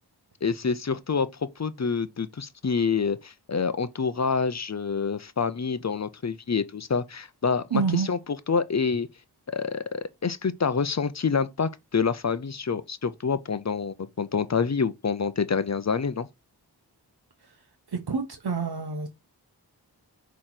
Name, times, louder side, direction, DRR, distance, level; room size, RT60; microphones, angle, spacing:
voice 1, 0.4-8.2 8.5-9.1 9.5-16.3, left 5 dB, 40° left, 0.6 m, -27 dB
voice 2, 7.7-8.1 17.9-19.1, right 5 dB, 70° right, 1.1 m, -27 dB
6.6 x 3.1 x 5.8 m
wide cardioid pair, 90°, 40 cm